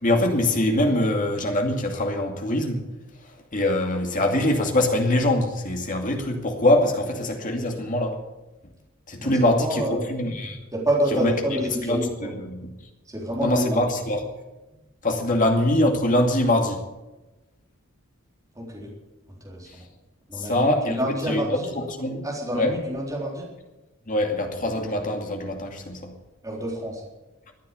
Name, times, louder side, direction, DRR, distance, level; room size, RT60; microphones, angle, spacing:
voice 1, 0.0-2.8 3.5-8.2 9.1-9.8 10.1-10.6 11.2-11.3 11.8-12.7 13.4-14.2 15.0-16.8 20.4-21.0 21.3-21.6 22.0-22.2 22.5-22.7 24.1-26.2, left 1 dB, 40° left, 2 dB, 2.4 m, -23 dB
voice 2, 9.2-10.0 10.7-12.3 13.1-14.0 15.3-15.4 18.6-18.9 19.3-19.9 20.3-21.7 22.2-23.5 26.4-27.0, equal, 15° right, -3 dB, 4.0 m, -28 dB
14.5 x 9.7 x 8.3 m, 1.1 s
head